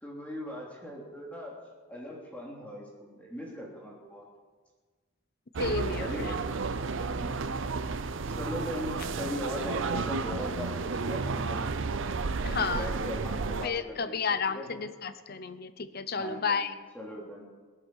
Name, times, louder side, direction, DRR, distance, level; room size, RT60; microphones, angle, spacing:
voice 1, 0.0-1.5 1.9-4.3 6.0-6.6 7.1-7.4 8.3-11.9 12.5-14.2 14.4-14.7 16.2-17.5, equal, 5° left, -3 dB, 3.3 m, -39 dB
sound 1, 5.5-13.7, right 4 dB, 60° right, 0.6 m, -32 dB
voice 2, 5.6-6.3 12.4-12.9 13.6-16.7, left 5 dB, 45° left, 12 dB, 0.8 m, -32 dB
17.5 x 11.0 x 6.3 m, 1.4 s
head